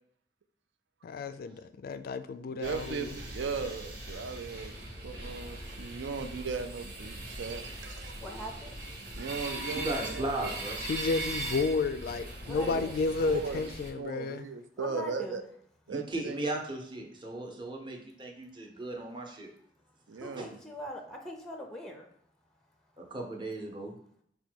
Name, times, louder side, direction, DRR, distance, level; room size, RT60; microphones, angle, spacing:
voice 1, 1.0-3.1 10.8-14.5, left 4 dB, 55° left, 0.3 m, -32 dB
voice 2, 2.5-4.7 5.0-8.1 9.1-9.9 10.1-10.5 12.6-15.4 15.9-16.4 20.1-20.5, right 5 dB, 80° right, 0.5 m, -37 dB
sound 1, 2.6-13.9, right 2 dB, 60° right, 1.0 m, -40 dB
voice 3, 8.2-8.9 12.4-13.0 14.8-15.4 20.1-22.1, left 1 dB, 5° left, 0.5 m, -42 dB
voice 4, 9.7-10.8 15.9-19.5 20.4-20.5 23.0-23.9, right 2 dB, 25° right, 0.8 m, -36 dB
5.0 x 2.2 x 4.4 m
head